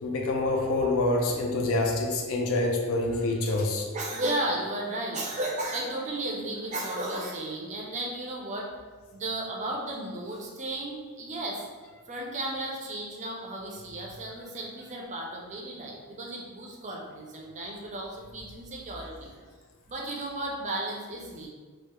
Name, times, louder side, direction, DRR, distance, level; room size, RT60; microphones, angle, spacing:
voice 1, 0.0-3.9, left 2 dB, 70° left, 1 dB, 0.4 m, -26 dB
voice 2, 3.9-8.7 9.1-11.6 12.1-19.3 19.9-21.5, right 1 dB, 35° right, -1 dB, 0.4 m, -34 dB
2.2 x 2.0 x 2.9 m, 1.4 s
head